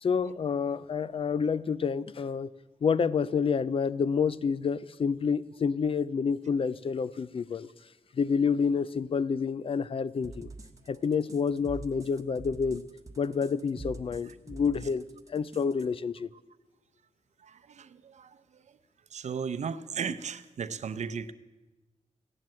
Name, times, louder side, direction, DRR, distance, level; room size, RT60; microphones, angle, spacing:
voice 1, 0.0-2.5 2.8-7.7 8.1-10.5 10.9-12.8 13.2-16.3, left 6 dB, 50° left, 0.4 m, -28 dB
sound 1, 10.2-15.9, right 2 dB, 25° right, 1.1 m, -45 dB
voice 2, 17.5-18.3 19.1-21.3, right 6 dB, 70° right, 0.7 m, -35 dB
15.5 x 11.0 x 7.5 m
wide cardioid pair, 120°, 12 cm